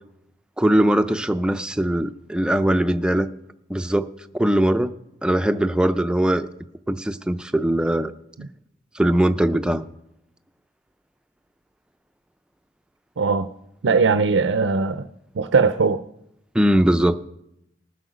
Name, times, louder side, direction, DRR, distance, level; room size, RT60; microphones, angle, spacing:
voice 1, 0.6-3.3 3.7-4.1 4.4-4.9 5.2-6.5 6.9-8.1 8.9-9.9 16.5-17.2, right 1 dB, 5° right, 10 dB, 0.4 m, -20 dB
voice 2, 13.2-13.5 13.8-15.1 15.3-16.0, right 4 dB, 85° right, 12 dB, 0.5 m, -19 dB
19.0 x 7.8 x 5.1 m, 0.82 s
head